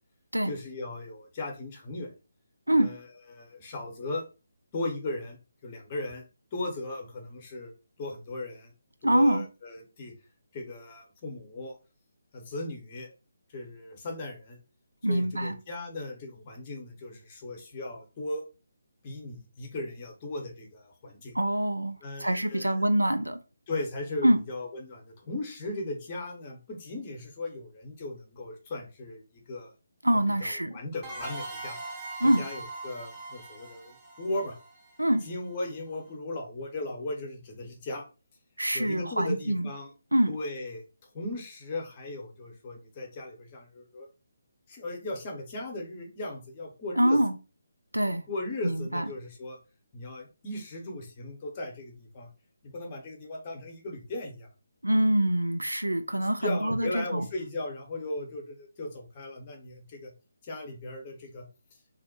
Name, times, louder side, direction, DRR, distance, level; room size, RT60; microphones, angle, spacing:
voice 1, 0.5-2.1 2.8-3.0 3.3-4.2 4.7-5.4 5.6-6.2 6.5-7.7 8.0-8.7 9.0-10.1 10.5-11.7 12.3-13.1 13.5-14.6 15.1-18.4 19.0-21.3 22.0-22.7 23.7-29.7 30.4-31.8 32.2-34.6 35.2-38.0 38.7-39.9 40.3-40.8 41.1-44.1 44.7-47.2 48.3-49.6 49.9-52.3 52.6-54.5 56.1-60.1 60.4-61.5, left 2 dB, 25° left, 0.7 m, -37 dB
voice 2, 9.0-9.5 15.0-15.6 21.3-23.4 24.2-24.4 30.0-30.8 32.2-32.4 35.0-35.2 38.6-39.7 40.1-40.3 47.0-47.3 47.9-48.2 48.6-49.1 54.8-57.3, right 1 dB, 80° right, 0.3 m, -25 dB
sound 1, 31.0-35.5, right 2 dB, 10° right, 0.7 m, -41 dB
2.5 x 2.1 x 2.7 m
figure-of-eight pair, 145°, 0 cm